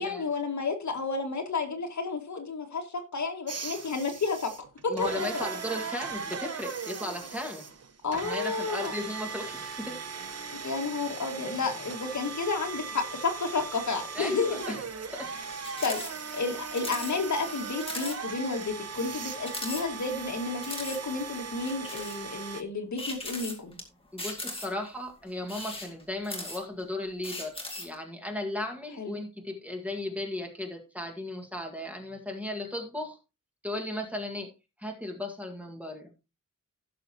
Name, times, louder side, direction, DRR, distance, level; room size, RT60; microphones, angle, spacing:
voice 1, 0.0-4.5 4.8-5.5 8.0-8.9 10.5-14.6 15.8-23.8 29.0-29.2, left 4 dB, 60° left, 2.1 m, -31 dB
sound 1, 3.5-22.6, right 5 dB, 50° right, 1.1 m, -38 dB
voice 2, 4.9-7.7 8.1-10.1 14.1-14.8 15.1-15.3 24.1-33.2 33.6-34.5 34.8-36.1, left 1 dB, 5° right, 1.8 m, -36 dB
sound 2, 15.6-16.1 16.4-16.5 16.8-17.1 17.5-17.6 17.8-18.2 18.6-18.7 19.4-20.2 20.6-21.0 21.7-22.2 23.0-23.8 24.2-24.9 25.4-26.8 27.2-27.9, left 2 dB, 15° left, 2.3 m, -38 dB
16.5 x 6.6 x 2.9 m
wide cardioid pair, 160°, 32 cm